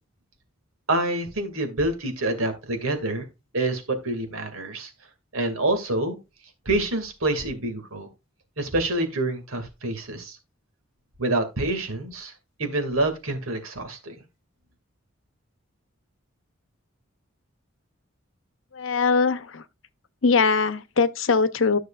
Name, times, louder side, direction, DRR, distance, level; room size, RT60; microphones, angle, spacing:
voice 1, 0.9-3.3 3.5-4.9 5.3-6.2 6.7-8.1 8.6-10.4 11.2-12.3 12.6-14.2, right 2 dB, 90° right, 2.2 m, -27 dB
voice 2, 18.7-19.6 20.2-21.8, left 4 dB, 70° left, 0.8 m, -21 dB
12.5 x 6.2 x 2.4 m
head